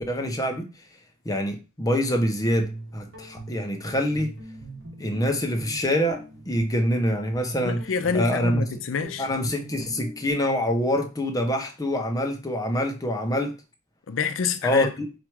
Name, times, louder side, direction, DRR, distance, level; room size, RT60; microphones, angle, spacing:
voice 1, 0.1-0.7 1.2-4.3 5.0-7.8 8.1-8.6 9.2-13.5 14.6-15.1, equal, 20° left, 0.7 m, -25 dB
Guitar, 2.3-10.3, right 2 dB, 65° right, 1.5 m, -42 dB
voice 2, 7.6-9.3 14.1-14.9, left 5 dB, 90° left, 0.5 m, -27 dB
4.5 x 2.5 x 4.5 m
head